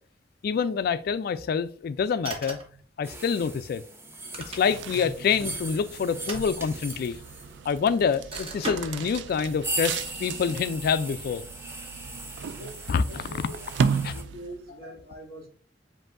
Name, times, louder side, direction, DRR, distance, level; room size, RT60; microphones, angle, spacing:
voice 1, 0.4-2.6 3.0-3.8 4.5-7.2 7.7-11.4 12.9-13.0 13.4-13.5 14.0-14.1, left 6 dB, 55° left, 0.3 m, -26 dB
sound 1, 2.2-2.8 4.1-5.0 6.1-7.1 8.3-9.3, right 2 dB, 35° right, 1.0 m, -38 dB
sound 2, 3.0-14.2, right 2 dB, 15° right, 0.7 m, -39 dB
sound 3, 4.4-14.7, right 6 dB, 75° right, 0.3 m, -35 dB
voice 2, 12.6-13.6 14.1-15.5, right 1 dB, 60° right, 2.3 m, -44 dB
7.6 x 2.7 x 2.5 m
head